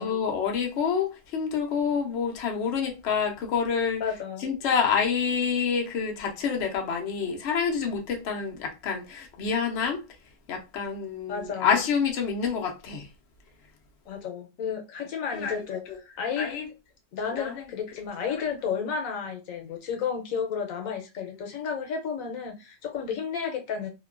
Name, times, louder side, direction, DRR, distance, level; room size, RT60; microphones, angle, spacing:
voice 1, 0.0-10.0 10.5-13.1 15.3-16.0 16.4-16.7 17.3-18.4, left 6 dB, 65° left, 0.8 m, -28 dB
voice 2, 4.0-4.5 11.3-11.7 14.1-15.8 16.2-16.5 17.1-23.9, left 6 dB, 85° left, 1.1 m, -32 dB
2.8 x 2.2 x 2.3 m
omnidirectional pair, 1.4 m